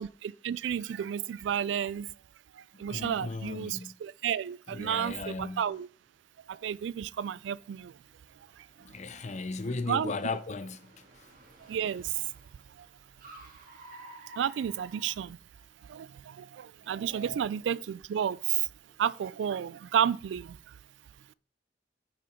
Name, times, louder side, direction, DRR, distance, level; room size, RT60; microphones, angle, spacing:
voice 1, 0.0-2.1 2.5-5.9 6.5-8.0 8.6-9.2 9.9-10.1 11.6-12.3 12.7-12.9 14.4-15.4 15.8-18.7 19.0-20.8, right 9 dB, 85° right, 0.3 m, -32 dB
voice 2, 2.9-3.9 4.7-5.6 8.8-10.9 17.2-17.3, left 3 dB, 40° left, 0.5 m, -36 dB
Car, 6.0-15.8, right 1 dB, 55° right, 1.9 m, -55 dB
9.0 x 5.7 x 3.7 m
head